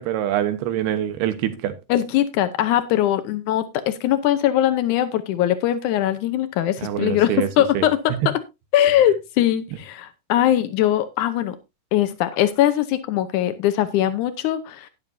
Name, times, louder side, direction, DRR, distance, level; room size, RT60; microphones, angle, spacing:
voice 1, 0.0-1.7 6.8-7.5 7.7-7.9, right 11 dB, 80° right, 3.1 m, -24 dB
voice 2, 1.9-8.4 8.7-11.6 11.9-14.9, left 12 dB, 90° left, 1.7 m, -21 dB
12.0 x 10.5 x 2.7 m
omnidirectional pair, 4.5 m